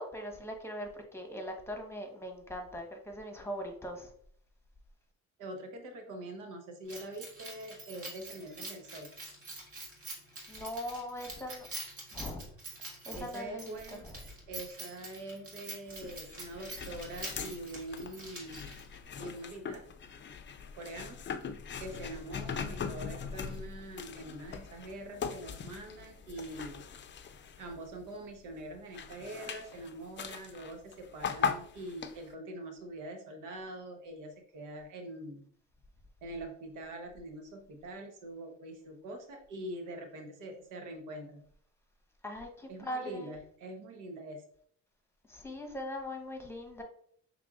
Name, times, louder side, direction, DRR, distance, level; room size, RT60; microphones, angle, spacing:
voice 1, 0.0-4.1 10.5-11.7 12.1-12.5 13.1-13.8 42.2-43.3 45.3-46.8, equal, 10° left, 2 dB, 1.1 m, -40 dB
voice 2, 5.4-9.1 13.1-14.0 14.5-18.7 19.2-19.8 20.8-21.2 21.8-26.8 27.6-35.5 36.2-41.4 42.7-44.4, right 1 dB, 90° right, 4 dB, 1.0 m, -44 dB
Keys jangling, 6.9-19.0, right 2 dB, 50° right, 1.9 m, -46 dB
sound 1, 16.0-28.2 28.6-32.3, left 6 dB, 40° left, 0.5 m, -40 dB
5.9 x 3.4 x 2.4 m, 0.62 s
cardioid pair, 90°, 30 cm